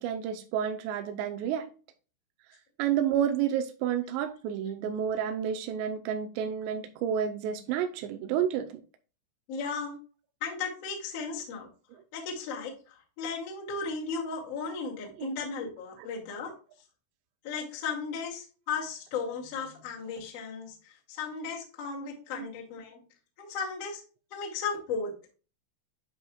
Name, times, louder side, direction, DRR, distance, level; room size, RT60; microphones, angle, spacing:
voice 1, 0.0-1.7 2.8-8.7 11.9-12.0 15.2-15.3 22.4-22.5, right 9 dB, 85° right, 2.5 m, -30 dB
voice 2, 9.5-10.0 10.4-11.7 12.1-16.5 17.4-20.8 21.1-23.0 23.4-24.0 24.3-25.1, left 5 dB, 50° left, 2.1 m, -35 dB
10.0 x 5.5 x 2.3 m
omnidirectional pair, 5.7 m